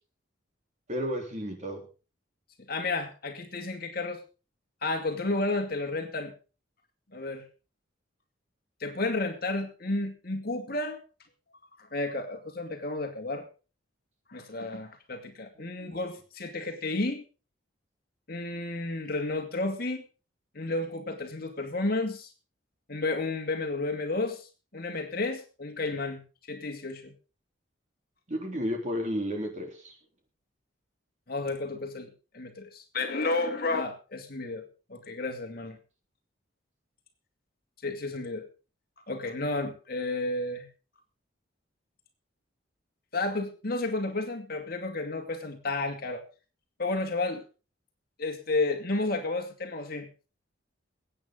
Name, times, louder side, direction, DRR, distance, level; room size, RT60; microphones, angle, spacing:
voice 1, 0.9-1.8 15.6-15.7 28.3-29.9, equal, 40° right, 3 dB, 3.6 m, -32 dB
voice 2, 2.7-4.2 4.8-6.3 7.1-7.5 8.8-11.0 11.8-13.4 14.3-17.2 18.3-20.0 20.5-22.3 22.9-26.2 26.5-27.1 31.3-34.6 34.9-35.8 37.8-38.4 39.1-40.7 43.1-46.2 46.8-47.4 48.2-50.1, left 2 dB, 50° left, 4 dB, 2.4 m, -32 dB
21.5 x 9.0 x 3.9 m, 0.33 s
head